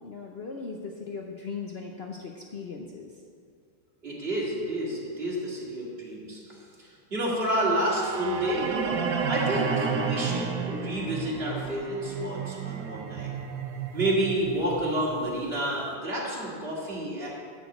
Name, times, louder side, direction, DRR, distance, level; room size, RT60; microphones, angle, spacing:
voice 1, 0.0-3.1, left 5 dB, 55° left, 1 dB, 0.7 m, -38 dB
voice 2, 4.0-8.7 9.3-13.4 13.9-17.3, right 1 dB, 35° right, -5 dB, 2.4 m, -30 dB
sound 1, 7.6-15.7, right 5 dB, 80° right, 1.4 m, -32 dB
10.5 x 5.1 x 7.9 m, 2.2 s
omnidirectional pair, 1.9 m